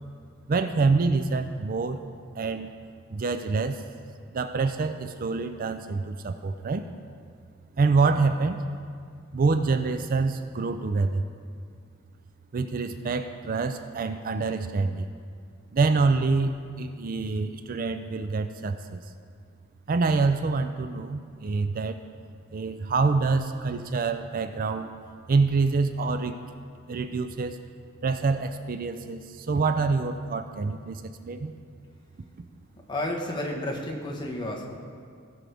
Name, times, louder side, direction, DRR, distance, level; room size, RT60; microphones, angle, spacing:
voice 1, 0.5-2.0 2.4-2.7 3.1-3.8 4.3-6.9 7.8-8.6 9.3-11.2 12.5-15.1 15.7-19.0 19.9-22.0 22.5-24.9 25.3-26.4 26.9-27.6 28.0-31.5, right 4 dB, 45° right, 9 dB, 0.4 m, -26 dB
voice 2, 32.9-34.8, left 1 dB, 20° left, -2 dB, 1.3 m, -31 dB
18.5 x 6.3 x 3.5 m, 2.2 s
head